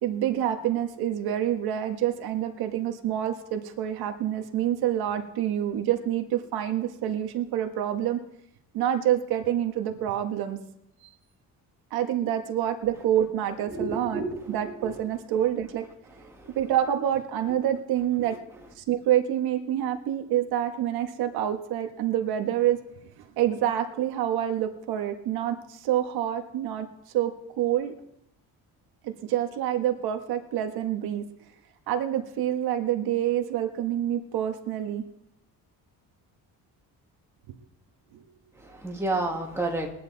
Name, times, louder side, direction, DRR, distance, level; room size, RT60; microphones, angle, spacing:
voice 1, 0.0-8.2 8.7-10.6 11.9-14.2 14.5-15.8 16.5-18.3 18.8-22.8 23.4-26.9 27.1-27.9 29.0-31.2 31.9-35.0 37.5-37.6 38.1-38.2, right 11 dB, 75° right, 5 dB, 1.6 m, -27 dB
voice 2, 13.7-15.0 16.1-16.6 38.5-39.9, right 2 dB, 5° right, -1 dB, 2.1 m, -31 dB
21.0 x 10.0 x 4.1 m, 0.79 s
cardioid pair, 175°, 37 cm